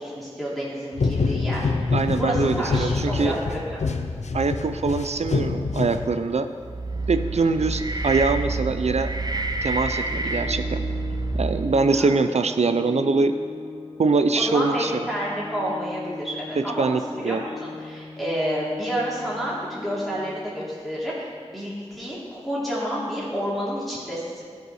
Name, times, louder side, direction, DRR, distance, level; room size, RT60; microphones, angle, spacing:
voice 1, 0.0-3.8 7.4-7.5 12.0-12.1 14.3-24.4, equal, ahead, -8 dB, 2.9 m, -30 dB
sound 1, 1.0-6.5, left 4 dB, 80° left, 0.6 m, -26 dB
voice 2, 1.9-3.4 4.3-6.5 7.1-9.1 9.6-10.8 11.3-13.3 14.0-14.9 16.8-17.4, right 4 dB, 70° right, 9 dB, 0.5 m, -23 dB
sound 2, 6.6-11.9, right 2 dB, 35° right, 0.7 m, -28 dB
Organ, 9.7-20.7, left 4 dB, 60° left, 1.6 m, -39 dB
13.0 x 5.3 x 4.9 m, 2.1 s
wide cardioid pair, 50°, 12 cm